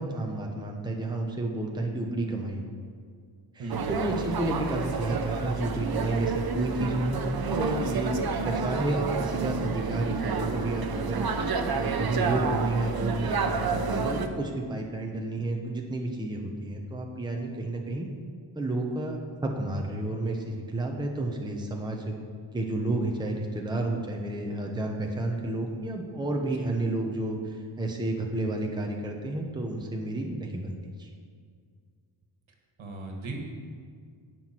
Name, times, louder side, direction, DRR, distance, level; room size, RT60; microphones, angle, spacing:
voice 1, 0.0-2.6 3.5-18.1 18.5-22.1 22.5-31.1, right 2 dB, 10° right, 0 dB, 0.9 m, -31 dB
voice 2, 3.6-3.9 32.8-33.5, right 3 dB, 70° right, 2 dB, 1.8 m, -36 dB
sound 1, 3.7-14.3, right 4 dB, 45° right, 0.8 m, -30 dB
17.5 x 6.2 x 4.5 m, 2.1 s
wide cardioid pair, 140°, 50 cm